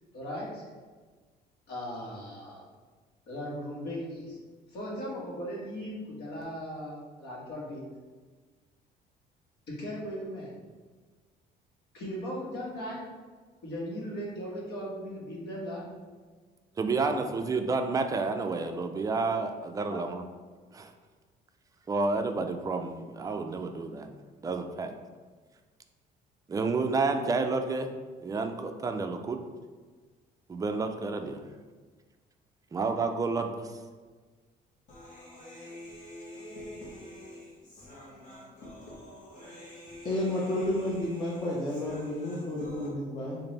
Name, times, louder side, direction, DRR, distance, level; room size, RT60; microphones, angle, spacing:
voice 1, 0.1-0.7 1.7-2.6 3.3-4.4 4.7-7.8 9.7-10.5 11.9-13.0 13.6-15.8 17.4-17.5 19.9-20.0, equal, 75° left, -4 dB, 1.3 m, -38 dB
voice 2, 16.8-20.2 20.7-20.9 21.9-24.1 24.4-24.9 26.5-27.9 28.2-29.4 30.5-31.4 32.7-33.7, right 3 dB, 20° right, 6 dB, 0.3 m, -30 dB
Human voice, 34.9-42.9, left 1 dB, 50° left, 1.1 m, -47 dB
voice 3, 40.0-43.4, left 1 dB, 25° left, -5 dB, 0.7 m, -31 dB
3.2 x 2.6 x 4.0 m, 1.4 s
cardioid pair, 110°, 17 cm